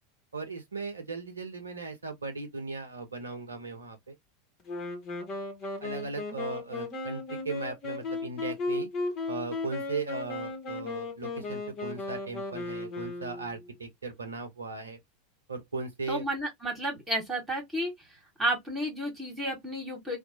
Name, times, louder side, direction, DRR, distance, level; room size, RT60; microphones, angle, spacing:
voice 1, 0.3-4.1 5.8-8.9 9.3-15.0 15.5-16.2, right 4 dB, 80° right, 0.7 m, -37 dB
Wind instrument woodwind instrument, 4.7-13.7, left 3 dB, 35° left, 1.0 m, -36 dB
voice 2, 16.1-17.9 18.4-20.2, right 1 dB, 15° right, 1.6 m, -31 dB
2.7 x 2.1 x 2.8 m
figure-of-eight pair, 85°, 0 cm